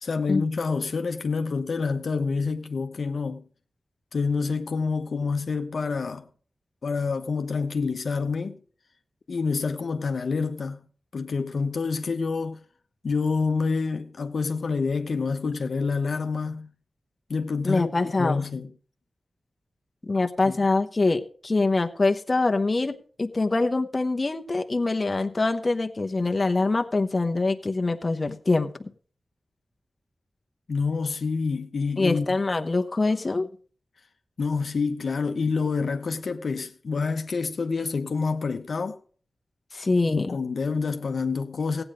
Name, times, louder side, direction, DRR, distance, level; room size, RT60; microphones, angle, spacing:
voice 1, 0.0-3.4 4.1-6.3 6.8-8.6 9.3-10.9 11.1-12.6 13.0-16.7 17.3-18.7 20.5-20.6 30.7-32.4 34.4-39.0 40.1-41.8, left 4 dB, 70° left, 0.9 m, -27 dB
voice 2, 17.6-18.4 20.1-28.9 32.0-33.5 39.7-40.4, left 3 dB, 35° left, 0.9 m, -24 dB
15.5 x 8.9 x 5.0 m
wide cardioid pair, 75°, 0 cm